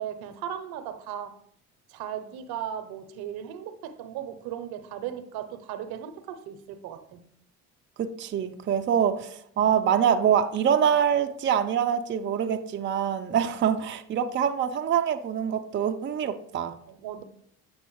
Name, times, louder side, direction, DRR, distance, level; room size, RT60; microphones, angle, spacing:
voice 1, 0.0-1.4 1.9-7.2 8.7-8.8 9.6-9.7 16.9-17.2, right 10 dB, 65° right, 0.7 m, -37 dB
voice 2, 8.0-16.7, right 8 dB, 30° right, 0.5 m, -25 dB
7.9 x 5.3 x 3.1 m
hypercardioid pair, 55°, 41 cm